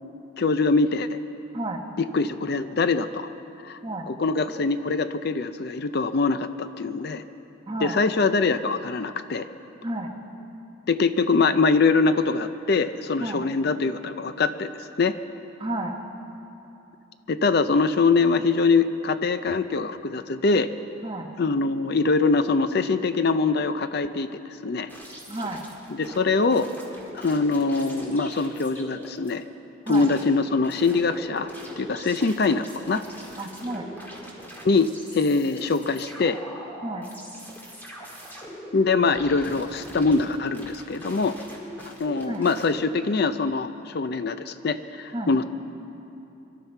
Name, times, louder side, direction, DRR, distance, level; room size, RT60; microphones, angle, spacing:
voice 1, 0.4-1.1 2.1-3.3 3.6-3.8 4.1-7.2 7.8-9.5 10.9-14.7 15.0-15.1 17.3-20.7 21.4-24.9 25.9-26.7 27.1-29.4 29.9-31.5 31.8-33.0 34.6-36.4 38.7-41.4 42.0-45.4, left 4 dB, 50° left, 11 dB, 0.5 m, -23 dB
voice 2, 1.5-1.8 3.8-4.1 7.7-8.0 9.8-10.1 13.2-13.5 15.6-15.9 21.0-21.3 25.3-25.6 29.9-30.1 33.4-33.9 36.8-37.1 42.2-42.5 45.1-45.3, right 1 dB, 25° right, 2 dB, 1.0 m, -31 dB
sound 1, 24.9-29.3 29.9-42.7, equal, 10° left, 1.9 m, -42 dB
25.5 x 12.5 x 4.5 m, 2.9 s
head